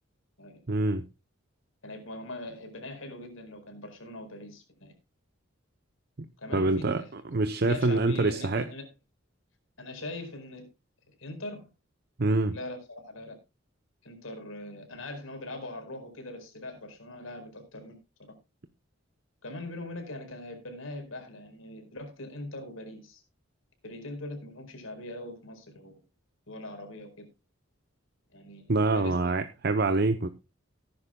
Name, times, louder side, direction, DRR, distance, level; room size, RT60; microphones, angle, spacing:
voice 1, 0.7-1.0 6.2-6.3 6.5-8.7 12.2-12.5 28.7-30.3, right 2 dB, 50° right, 0.8 m, -26 dB
voice 2, 1.8-4.9 6.4-7.1 7.6-8.9 9.8-10.7 11.2-11.7 12.5-13.4 14.0-18.0 19.4-23.2 23.8-26.0 26.5-27.3 28.3-29.3, left 1 dB, 90° left, 4.6 m, -41 dB
18.5 x 10.5 x 2.3 m
head